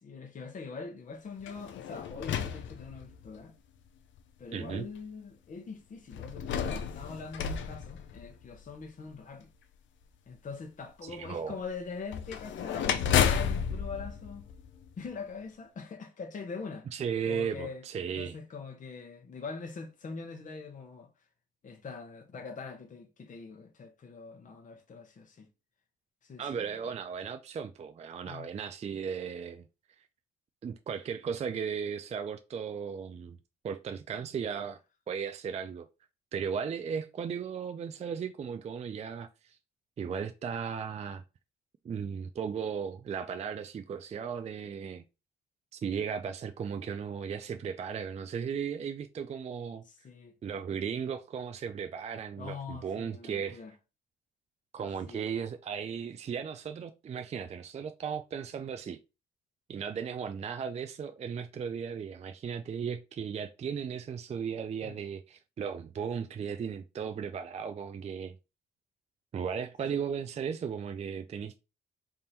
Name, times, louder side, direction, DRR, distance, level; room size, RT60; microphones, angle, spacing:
voice 1, 0.0-3.5 4.4-9.5 10.3-14.5 15.0-16.9 17.3-17.8 18.2-21.1 21.6-25.5 26.2-26.9 28.3-28.5 49.8-50.3 52.4-53.7 55.1-55.3 64.8-65.0, left 4 dB, 40° left, 1.0 m, -43 dB
sound 1, 1.4-3.4 4.2-4.3 6.1-8.7 12.1-15.2, left 8 dB, 70° left, 0.6 m, -32 dB
voice 2, 4.5-4.8 11.0-11.5 16.9-18.4 26.4-29.7 30.6-33.4 33.6-34.8 35.1-35.9 36.3-39.6 40.0-41.2 41.8-45.0 45.7-49.8 50.4-53.6 54.7-59.0 59.7-68.4 69.3-71.6, right 7 dB, 35° right, 0.4 m, -36 dB
3.6 x 2.5 x 4.3 m
cardioid pair, 90°, 20 cm